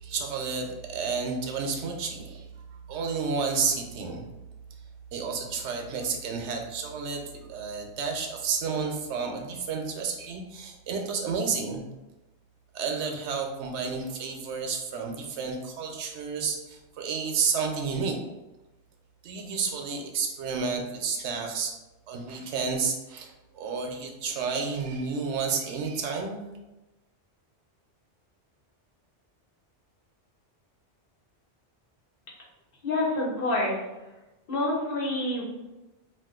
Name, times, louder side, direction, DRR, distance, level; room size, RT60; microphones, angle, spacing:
voice 1, 0.0-2.5 2.9-4.2 5.1-7.2 7.5-11.8 12.7-18.2 19.2-21.8 22.1-26.4, right 5 dB, 75° right, 2 dB, 0.9 m, -31 dB
voice 2, 32.8-33.8 34.5-35.4, left 2 dB, 55° left, -4 dB, 1.0 m, -27 dB
2.5 x 2.3 x 3.6 m, 1.0 s
omnidirectional pair, 1.2 m